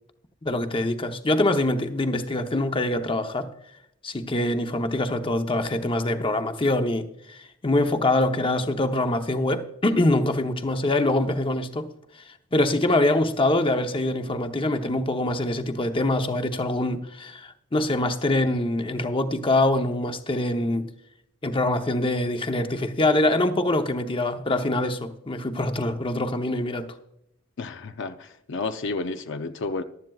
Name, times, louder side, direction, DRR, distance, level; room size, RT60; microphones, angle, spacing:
voice 1, 0.4-3.5 4.0-11.9 12.5-20.9 21.4-26.9, left 1 dB, 25° left, 0.8 m, -24 dB
voice 2, 27.6-29.8, left 3 dB, 60° left, 0.6 m, -31 dB
15.0 x 12.0 x 2.4 m
head